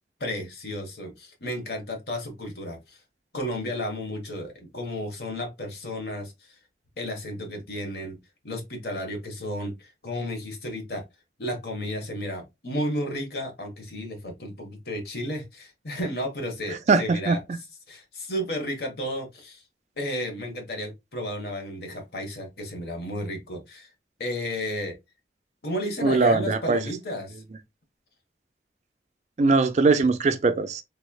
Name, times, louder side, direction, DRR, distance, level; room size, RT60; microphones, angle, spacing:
voice 1, 0.2-3.0 3.3-6.3 7.0-8.2 8.4-11.0 11.4-17.4 17.9-19.6 20.0-23.9 24.2-24.9 25.6-27.4, equal, 60° left, 1.1 m, -33 dB
voice 2, 16.9-17.4 26.0-26.8 29.4-30.8, right 3 dB, 40° right, 0.3 m, -21 dB
3.5 x 3.1 x 2.2 m
head